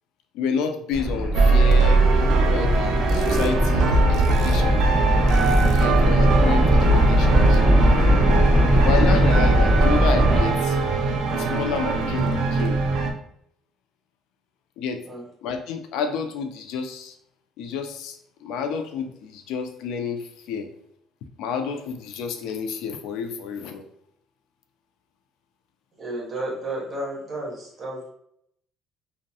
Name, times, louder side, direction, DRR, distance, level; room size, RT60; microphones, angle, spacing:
voice 1, 0.3-2.0 2.5-4.8 5.7-7.6 8.8-10.8 11.3-12.8 14.8-15.0 15.4-17.1 17.6-20.7 21.4-23.8, left 6 dB, 80° left, 6 dB, 0.3 m, -30 dB
sound 1, 0.9-10.4, equal, 15° left, 1.1 m, -20 dB
sound 2, 1.3-13.1, right 3 dB, 65° right, 0.4 m, -21 dB
voice 2, 26.0-28.1, right 1 dB, 25° right, -3 dB, 0.8 m, -32 dB
2.6 x 2.1 x 2.6 m, 0.72 s
cardioid pair, 180°, 0 cm